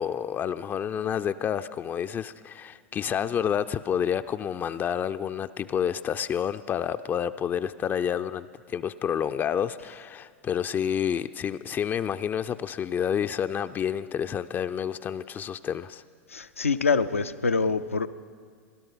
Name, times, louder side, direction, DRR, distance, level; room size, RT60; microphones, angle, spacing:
voice 1, 0.0-16.0, left 8 dB, 25° left, 10 dB, 0.4 m, -29 dB
voice 2, 16.3-18.1, left 4 dB, 90° left, 11 dB, 0.5 m, -25 dB
17.5 x 12.0 x 5.6 m, 2.1 s
hypercardioid pair, 90°, 7 cm